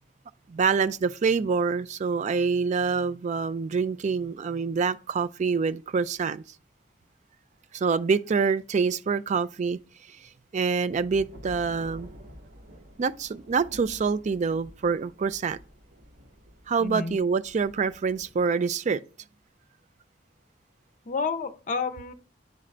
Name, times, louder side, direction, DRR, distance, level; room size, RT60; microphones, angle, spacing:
voice 1, 0.5-6.4 7.7-9.8 10.5-12.1 13.0-15.6 16.7-19.0, right 5 dB, 40° right, 0.3 m, -26 dB
sound 1, 10.9-18.5, equal, 80° right, 2.3 m, -49 dB
voice 2, 16.8-17.2 21.1-22.1, left 4 dB, 45° left, 0.6 m, -30 dB
9.6 x 3.8 x 3.2 m
head